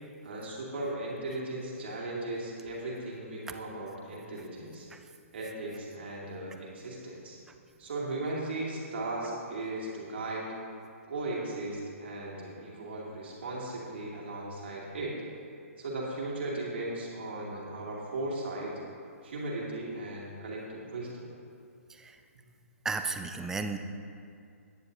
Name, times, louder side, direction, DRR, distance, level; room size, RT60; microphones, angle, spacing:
voice 1, 0.2-4.9 5.3-7.4 7.8-10.5 11.1-15.2 15.8-18.7 19.2-21.3, right 2 dB, 50° right, -4 dB, 2.5 m, -37 dB
voice 2, 22.8-23.8, right 4 dB, 5° right, 7 dB, 0.4 m, -33 dB
18.0 x 10.0 x 2.7 m, 2.4 s
figure-of-eight pair, 125°, 8 cm